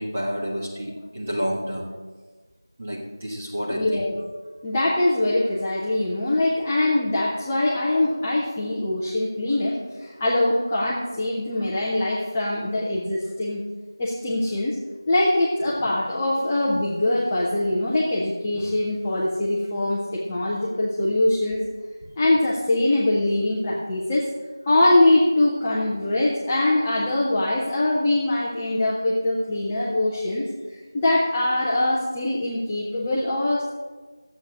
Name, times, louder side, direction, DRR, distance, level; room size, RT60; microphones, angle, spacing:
voice 1, 0.0-1.9 2.8-4.0, equal, 15° right, -5 dB, 1.5 m, -29 dB
voice 2, 3.7-4.2 4.6-13.6 14.0-14.8 15.1-21.6 22.2-24.3 24.7-33.7, left 1 dB, 5° left, -7 dB, 0.4 m, -23 dB
11.5 x 8.1 x 6.2 m, 1.4 s
figure-of-eight pair, 175°, 2 cm